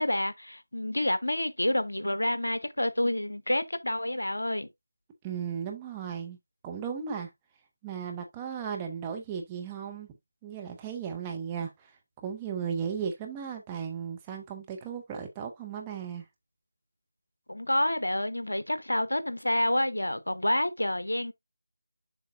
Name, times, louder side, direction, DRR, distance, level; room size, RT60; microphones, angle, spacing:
voice 1, 0.0-4.7 17.5-21.3, left 1 dB, 70° left, 1.0 m, -28 dB
voice 2, 5.2-6.4 6.6-7.3 7.8-10.1 10.4-11.9 12.2-16.2, right 7 dB, 10° right, 0.9 m, -36 dB
7.5 x 5.3 x 2.5 m
figure-of-eight pair, 160°, 0 cm